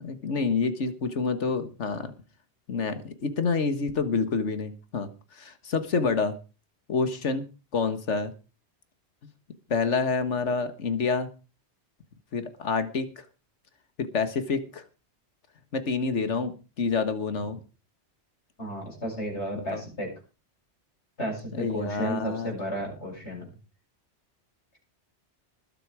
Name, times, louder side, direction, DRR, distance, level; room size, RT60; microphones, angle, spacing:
voice 1, 0.0-2.1 2.7-6.3 6.9-7.5 7.7-8.3 9.7-11.3 12.3-13.3 14.0-14.8 15.7-17.6 19.7-19.8 21.5-22.6, left 4 dB, 90° left, 10 dB, 1.8 m, -28 dB
voice 2, 18.6-20.1 21.2-23.6, right 1 dB, 75° left, -1 dB, 8.2 m, -33 dB
20.5 x 7.8 x 4.9 m, 0.33 s
omnidirectional pair, 1.2 m